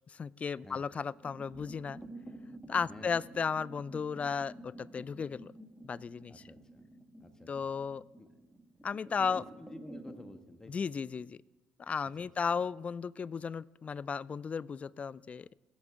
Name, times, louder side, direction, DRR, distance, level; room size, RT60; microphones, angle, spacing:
voice 1, 0.1-2.0 2.7-5.5 5.8-6.4 7.5-8.0 8.8-9.4 10.7-11.4 11.8-15.5, left 6 dB, 35° left, 23 dB, 0.3 m, -35 dB
sound 1, 1.1-10.3, right 1 dB, 5° right, 2.0 m, -50 dB
voice 2, 2.8-3.2 6.3-6.8 7.2-7.7 8.2-8.3 9.2-10.9 12.2-12.3 12.5-12.7, left 1 dB, 15° left, 8 dB, 1.4 m, -51 dB
21.0 x 8.5 x 3.6 m, 1.2 s
hypercardioid pair, 60°, 4 cm